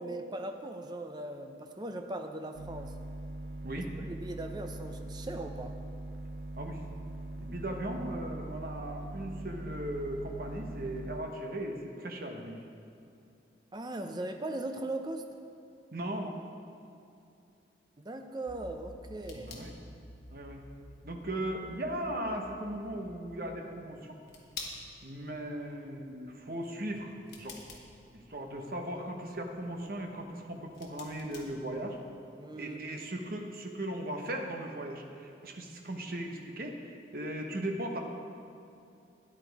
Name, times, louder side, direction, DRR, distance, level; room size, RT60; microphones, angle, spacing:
voice 1, 0.0-2.9 4.1-5.8 13.7-15.2 18.0-19.6 32.4-33.0, right 2 dB, 20° right, 6 dB, 0.5 m, -39 dB
sound 1, 2.5-11.2, right 2 dB, 80° right, 0.6 m, -42 dB
voice 2, 7.4-12.6 15.9-16.4 19.3-19.7 20.3-20.6 21.0-24.2 25.0-27.6 28.1-32.0 32.6-38.0, right 1 dB, 50° right, 3 dB, 1.1 m, -38 dB
sound 2, 18.5-23.6, equal, 90° left, 1.6 m, -52 dB
sound 3, 18.6-32.2, left 4 dB, 60° left, 1.4 m, -52 dB
13.0 x 10.0 x 3.5 m, 2.6 s
head